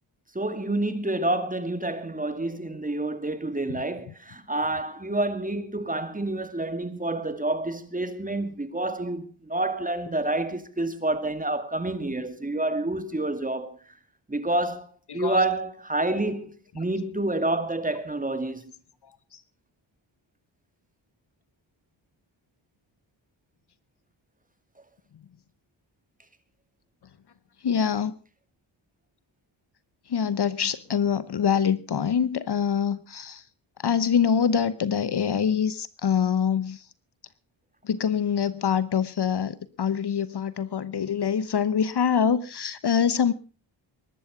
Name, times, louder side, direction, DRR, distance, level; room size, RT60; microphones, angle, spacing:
voice 1, 0.3-13.8 14.3-18.6, right 2 dB, 15° right, 2.3 m, -28 dB
voice 2, 15.1-15.5 16.1-16.2 19.3-19.4 27.6-28.1 30.1-33.4 33.8-36.9 37.8-43.3, left 7 dB, 55° left, 1.0 m, -25 dB
20.5 x 12.0 x 5.0 m
cardioid pair, 80°, 49 cm